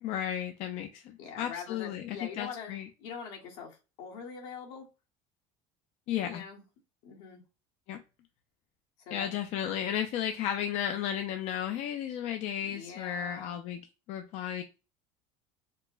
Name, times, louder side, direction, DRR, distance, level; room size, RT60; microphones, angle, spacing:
voice 1, 0.0-2.9 6.1-6.4 7.9-8.0 9.1-13.8 14.1-14.6, left 10 dB, 50° left, 6 dB, 0.4 m, -34 dB
voice 2, 1.2-4.9 6.2-6.6 7.0-7.4 9.0-9.3 12.6-13.6, left 6 dB, 75° left, 0 dB, 1.3 m, -43 dB
4.4 x 2.0 x 2.4 m, 0.29 s
cardioid pair, 150°, 14 cm